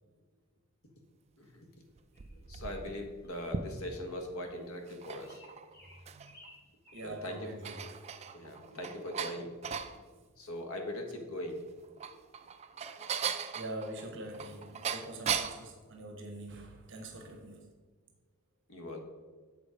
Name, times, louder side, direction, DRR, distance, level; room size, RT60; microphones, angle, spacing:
sound 1, 2.0-4.1 4.8-6.5 6.9-7.0 7.4-10.0 11.7-15.7, right 7 dB, 30° right, 0.3 m, -38 dB
sound 2, 2.1-2.3 3.2-3.3 3.9-4.1 4.4-4.6 5.2-7.4 7.8-7.9 8.3-8.5 8.8-9.0, left 1 dB, 50° left, 1.9 m, -59 dB
voice 1, 2.3-5.4 7.0-7.4 8.3-9.5 9.8-11.8 12.0-12.2 18.7-19.0, left 1 dB, 85° left, 1.2 m, -41 dB
voice 2, 6.9-8.0 13.5-17.7, right 1 dB, 60° right, 1.1 m, -44 dB
7.3 x 5.0 x 5.0 m
head